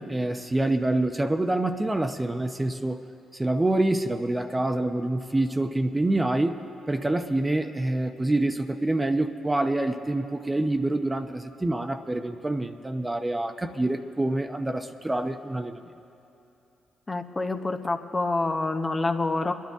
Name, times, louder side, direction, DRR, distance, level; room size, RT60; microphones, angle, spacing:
voice 1, 0.0-3.0 3.3-6.6 6.9-15.8, right 2 dB, 20° right, 7 dB, 0.9 m, -26 dB
voice 2, 17.1-19.5, left 2 dB, 30° left, 5 dB, 1.0 m, -27 dB
25.0 x 10.5 x 3.6 m, 2.8 s
supercardioid pair, 50°, 0 cm